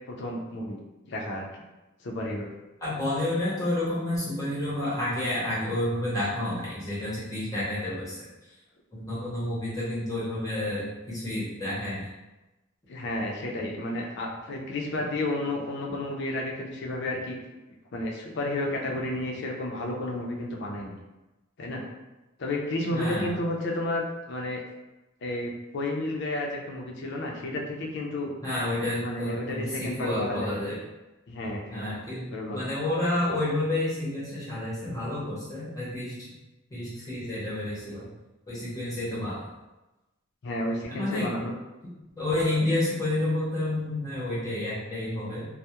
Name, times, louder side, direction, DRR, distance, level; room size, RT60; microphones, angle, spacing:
voice 1, 0.1-0.8 1.1-1.5 2.0-2.5 12.9-17.4 17.9-20.9 21.6-21.8 22.4-24.6 25.2-28.3 29.0-30.6 31.3-31.9 32.3-32.7 40.4-41.5, left 1 dB, 55° left, 0 dB, 0.4 m, -31 dB
voice 2, 2.8-8.2 8.9-12.1 22.9-23.3 28.4-30.7 31.7-36.3 36.7-38.0 38.5-39.4 40.9-41.3 42.2-45.5, left 1 dB, 15° left, -9 dB, 0.7 m, -30 dB
2.2 x 2.0 x 2.8 m, 1.0 s
head